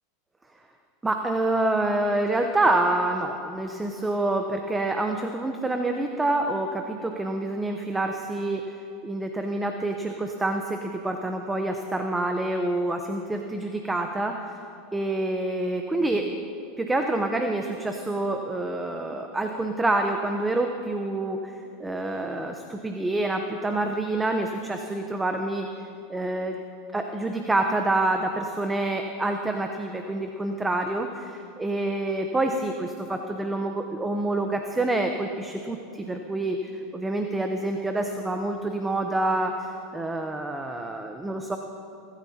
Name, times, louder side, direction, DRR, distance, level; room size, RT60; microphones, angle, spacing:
voice 1, 1.0-8.8 9.0-14.5 14.9-16.2 16.8-25.7 26.1-26.6 26.9-41.6, right 2 dB, 10° right, 4 dB, 0.9 m, -27 dB
22.5 x 13.0 x 2.9 m, 2.8 s
hypercardioid pair, 110°, 0 cm